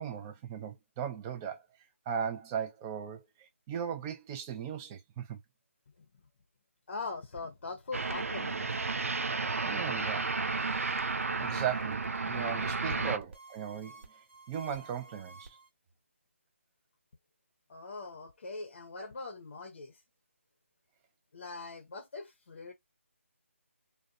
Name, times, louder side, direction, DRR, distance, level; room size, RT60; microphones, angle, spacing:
voice 1, 0.0-1.7 2.1-5.4 9.6-10.3 11.4-14.2 14.5-15.6, right 8 dB, 15° right, 0.3 m, -37 dB
voice 2, 6.9-8.8 12.2-12.3 12.8-13.1 17.7-19.9 21.3-22.7, left 3 dB, 55° left, 0.6 m, -42 dB
sound 1, 7.9-13.2, right 4 dB, 85° right, 0.4 m, -32 dB
sound 2, 10.6-15.7, right 3 dB, 60° right, 1.0 m, -52 dB
2.6 x 2.1 x 2.4 m
figure-of-eight pair, 160°, 7 cm